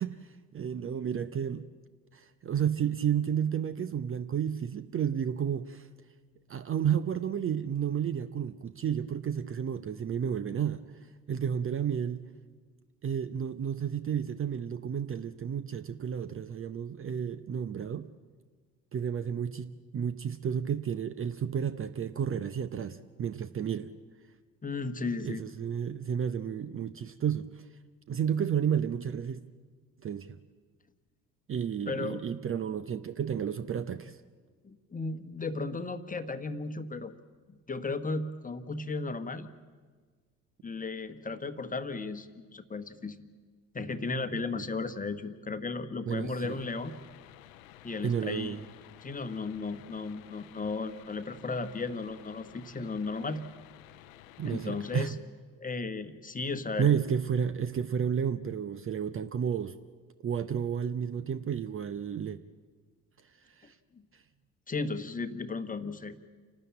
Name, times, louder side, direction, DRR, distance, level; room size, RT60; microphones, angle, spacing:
voice 1, 0.0-1.6 2.1-5.9 6.5-10.8 11.3-12.2 13.0-18.1 18.9-23.9 25.2-27.7 28.1-29.4 30.0-30.4 31.5-34.2 44.5-44.6 46.1-46.6 48.0-48.6 54.4-55.2 56.8-59.7 60.2-62.4 63.6-63.7, right 8 dB, 30° right, 13 dB, 0.7 m, -31 dB
voice 2, 24.6-25.5 31.9-32.2 34.6-37.1 37.7-39.5 40.6-43.2 43.7-46.9 47.8-48.6 49.0-53.4 54.4-55.1 55.6-57.0 63.9-64.0 64.7-66.2, left 3 dB, 20° left, 10 dB, 1.2 m, -35 dB
sound 1, 46.4-55.1, left 13 dB, 70° left, 0.8 m, -53 dB
29.0 x 12.5 x 8.7 m, 1.5 s
figure-of-eight pair, 50°, 42 cm